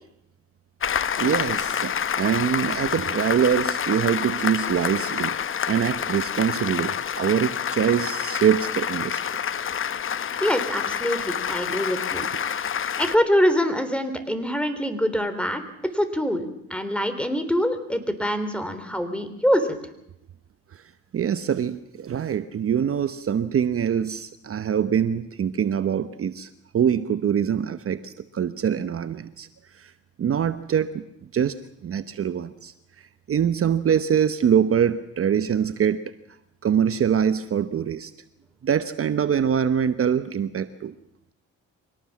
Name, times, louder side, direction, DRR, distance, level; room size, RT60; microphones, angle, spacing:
Applause, 0.8-13.2, left 8 dB, 45° left, 0.9 m, -28 dB
voice 1, 1.2-5.4 5.7-9.3 20.7-20.8 21.1-29.5 29.7-29.9 30.2-31.0 31.3-31.6 31.8-36.0 36.6-38.1 38.6-40.9, right 8 dB, 50° right, 11 dB, 1.0 m, -24 dB
voice 2, 10.4-12.3 13.0-15.6 15.9-19.8, equal, 5° left, 9 dB, 3.6 m, -24 dB
24.5 x 18.5 x 7.4 m, 0.80 s
cardioid pair, 90°, 30 cm